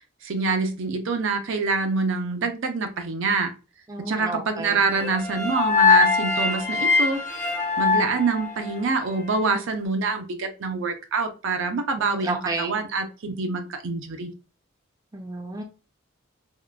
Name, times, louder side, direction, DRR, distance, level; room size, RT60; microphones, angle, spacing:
voice 1, 0.2-3.5 4.0-7.2 7.8-14.3, right 4 dB, 65° right, 6 dB, 0.5 m, -26 dB
voice 2, 3.9-4.8 12.0-12.7 15.1-15.6, right 2 dB, 20° right, 2 dB, 0.5 m, -31 dB
sound 1, 4.9-9.1, left 4 dB, 40° left, 0.7 m, -22 dB
3.6 x 2.3 x 2.3 m, 0.32 s
head